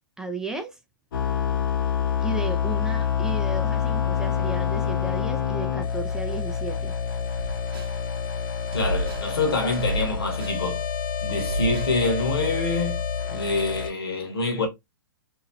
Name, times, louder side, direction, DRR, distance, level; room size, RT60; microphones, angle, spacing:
voice 1, 0.2-0.8 2.2-6.9, right 3 dB, 5° right, 0.4 m, -34 dB
sound 1, 1.1-13.9, left 7 dB, 65° left, 1.1 m, -27 dB
sound 2, 7.4-8.0 8.7-9.3 9.7-10.6 11.4-12.0, right 1 dB, 75° right, 0.8 m, -30 dB
voice 2, 8.7-10.8 11.2-13.0 13.3-14.7, left 3 dB, 80° left, 1.4 m, -26 dB
2.9 x 2.6 x 2.6 m
hypercardioid pair, 125°, 13 cm